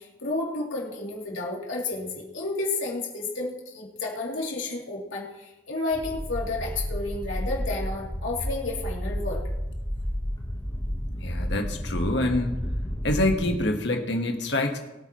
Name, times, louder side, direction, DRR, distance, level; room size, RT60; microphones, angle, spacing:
voice 1, 0.0-9.4, left 2 dB, 85° left, -3 dB, 3.0 m, -31 dB
sound 1, 5.9-13.5, equal, 20° left, 1.2 m, -31 dB
voice 2, 11.2-12.5 13.0-14.8, left 1 dB, 65° left, 4 dB, 1.5 m, -26 dB
22.0 x 9.1 x 3.1 m, 0.98 s
head